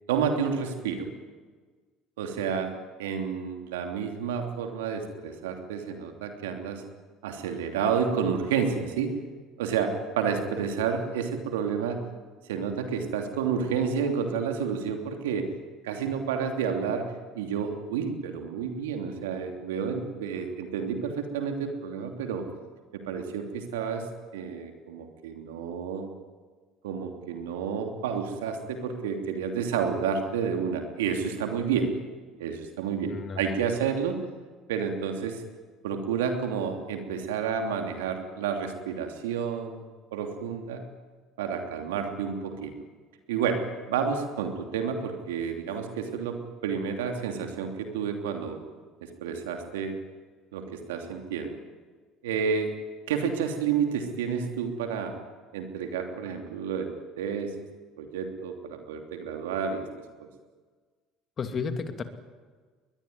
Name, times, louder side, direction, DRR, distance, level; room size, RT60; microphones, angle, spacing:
voice 1, 0.1-1.1 2.2-2.7 3.0-6.8 7.2-9.1 9.6-12.0 12.5-15.5 15.8-22.4 23.1-24.0 24.3-26.1 26.8-31.9 32.4-34.2 34.7-35.4 35.8-39.8 40.1-40.8 41.4-42.7 43.3-43.6 43.9-48.6 49.0-49.9 50.5-51.6 52.2-52.7 53.1-55.1 55.5-56.9 57.2-57.5 58.0-59.9, right 6 dB, 90° right, 4 dB, 3.0 m, -30 dB
voice 2, 33.1-33.6 61.4-62.0, left 5 dB, 40° left, 7 dB, 2.8 m, -33 dB
21.5 x 21.5 x 9.6 m, 1.5 s
hypercardioid pair, 75°, 0 cm